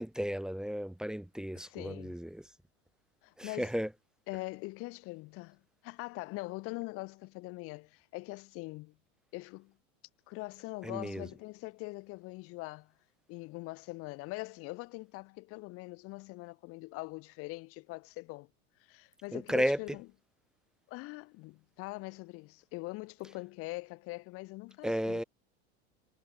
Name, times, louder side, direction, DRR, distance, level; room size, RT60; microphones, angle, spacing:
voice 1, 0.0-2.4 3.4-3.9 10.8-11.3 19.3-19.8 24.8-25.2, equal, ahead, 0.5 m, -33 dB
voice 2, 1.5-2.2 3.2-3.7 4.3-8.9 9.3-9.7 10.3-12.9 13.3-18.5 18.9-20.1 20.9-25.2, left 23 dB, 45° left, 0.5 m, -43 dB
hypercardioid pair, 100°, 32 cm